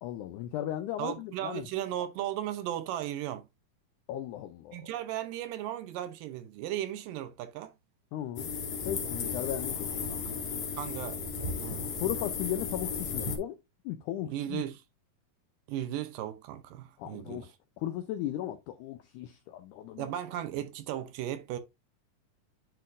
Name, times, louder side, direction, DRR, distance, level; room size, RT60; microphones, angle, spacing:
voice 1, 0.0-1.7 4.1-4.8 8.1-8.5 8.9-10.4 12.0-13.6 13.9-14.6 17.0-20.1, left 12 dB, 85° left, 1.7 m, -36 dB
voice 2, 1.0-3.5 4.7-7.7 10.8-11.9 14.3-14.8 15.7-17.5 20.0-21.6, right 12 dB, 80° right, 2.2 m, -36 dB
sound 1, 8.4-13.4, left 5 dB, 55° left, 1.9 m, -34 dB
10.5 x 3.8 x 2.5 m
omnidirectional pair, 4.1 m